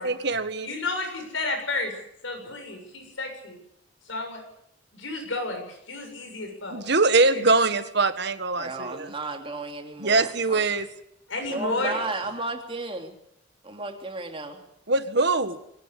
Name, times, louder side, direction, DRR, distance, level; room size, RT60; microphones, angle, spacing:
voice 1, 0.0-0.7 6.7-9.1 10.0-10.9 14.9-15.6, right 3 dB, 60° right, 10 dB, 1.6 m, -23 dB
voice 2, 0.6-1.9 2.2-3.6 4.1-4.4 4.9-6.8 7.3-7.5 11.3-12.0, left 2 dB, 80° left, 4 dB, 7.4 m, -31 dB
voice 3, 8.6-10.6 11.5-13.1 13.6-14.6, right 3 dB, 30° right, 3 dB, 3.1 m, -33 dB
22.5 x 18.0 x 8.2 m, 0.74 s
head